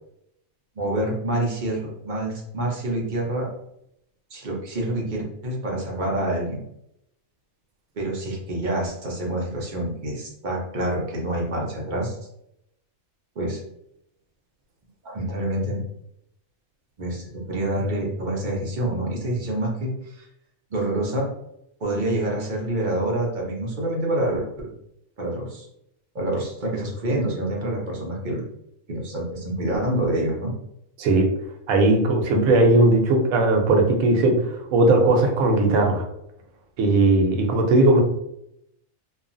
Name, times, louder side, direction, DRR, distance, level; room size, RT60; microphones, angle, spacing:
voice 1, 0.8-3.5 4.3-6.6 8.0-12.2 13.4-13.6 15.1-15.8 17.0-20.3 20.7-21.3 21.8-24.7 25.2-25.7 26.1-28.4 28.9-30.5, right 1 dB, 45° right, -2 dB, 0.7 m, -27 dB
voice 2, 31.7-34.3 34.7-36.0 36.8-38.0, right 2 dB, 90° right, 2 dB, 1.1 m, -18 dB
2.8 x 2.4 x 2.5 m, 0.78 s
omnidirectional pair, 1.4 m